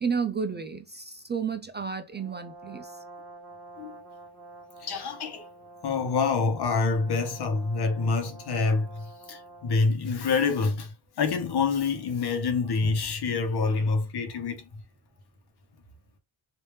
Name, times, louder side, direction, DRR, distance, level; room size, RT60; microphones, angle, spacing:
voice 1, 0.0-2.9, right 6 dB, 25° right, 0.4 m, -31 dB
Brass instrument, 2.1-9.9, right 2 dB, 5° right, 1.5 m, -48 dB
voice 2, 4.8-5.4 5.8-14.7, left 4 dB, 60° left, 1.1 m, -27 dB
3.3 x 2.7 x 3.1 m
cardioid pair, 115°, 44 cm